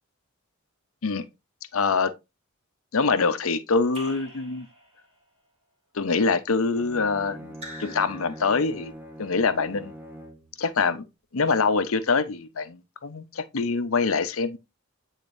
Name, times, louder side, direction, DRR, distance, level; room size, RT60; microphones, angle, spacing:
voice 1, 1.7-2.1 2.9-4.7 5.9-8.9 9.2-9.9 10.6-11.0 11.3-14.6, left 4 dB, 70° left, 0.7 m, -24 dB
Raindrop / Drip, 3.9-5.2 7.5-8.9, equal, 30° right, 2.0 m, -45 dB
Bowed string instrument, 6.7-10.5, equal, 10° right, 0.9 m, -43 dB
8.8 x 4.1 x 2.6 m
head